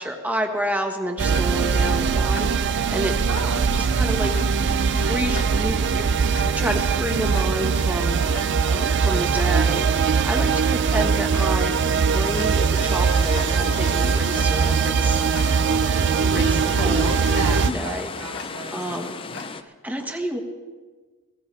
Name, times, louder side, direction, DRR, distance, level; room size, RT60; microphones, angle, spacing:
voice 1, 0.0-3.1 3.7-4.3 4.6-8.2 8.6-11.7 12.1-15.2 16.2-17.1 17.7-18.1 18.7-20.4, equal, 5° right, 3 dB, 1.4 m, -30 dB
Tick-tock, 1.2-19.6, left 3 dB, 55° left, 1.6 m, -41 dB
sound 1, 1.2-17.7, right 5 dB, 55° right, 0.5 m, -21 dB
voice 2, 3.3-4.1 10.6-10.9 16.7-18.8, right 3 dB, 75° right, 3 dB, 1.6 m, -34 dB
sound 2, 12.8-19.6, left 4 dB, 25° left, 0.5 m, -36 dB
20.5 x 16.5 x 3.4 m, 1.4 s
head